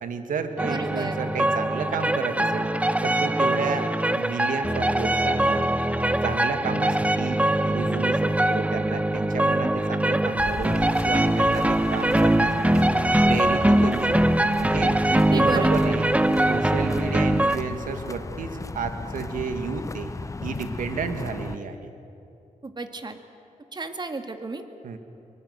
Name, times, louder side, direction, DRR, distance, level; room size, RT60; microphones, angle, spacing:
voice 1, 0.0-2.7 3.0-3.9 4.1-5.7 6.2-12.9 13.3-15.0 15.3-16.1 16.5-20.1 20.4-21.9 24.8-25.0, right 5 dB, 85° right, 7 dB, 1.7 m, -31 dB
sound 1, 0.6-17.6, right 1 dB, 10° right, 0.9 m, -22 dB
voice 2, 0.6-1.2 15.1-16.0 22.6-23.2 23.7-24.6, right 3 dB, 35° right, 7 dB, 1.9 m, -32 dB
sound 2, 10.4-21.6, left 3 dB, 25° left, 0.6 m, -36 dB
23.5 x 19.5 x 7.9 m, 2.7 s
cardioid pair, 70°, 13 cm